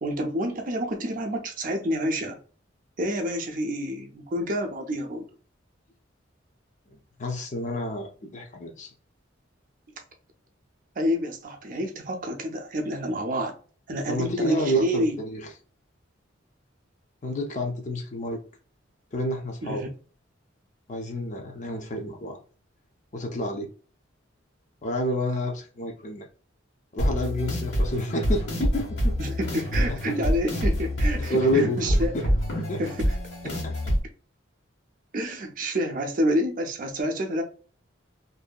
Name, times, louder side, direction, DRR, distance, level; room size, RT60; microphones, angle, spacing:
voice 1, 0.0-2.4 3.0-5.2 11.0-13.5 13.9-15.2 19.6-19.9 29.2-32.1 32.8-33.1 35.1-37.4, equal, 45° right, 0.5 m, -28 dB
voice 2, 7.2-8.9 14.1-15.4 17.2-18.4 19.1-19.9 20.9-22.4 23.1-23.7 24.8-26.3 26.9-29.1 31.3-32.2 32.6-32.8 33.4-33.7, equal, 40° left, 0.5 m, -29 dB
sound 1, 27.0-34.0, equal, 85° left, 1.2 m, -26 dB
2.7 x 2.6 x 2.2 m
head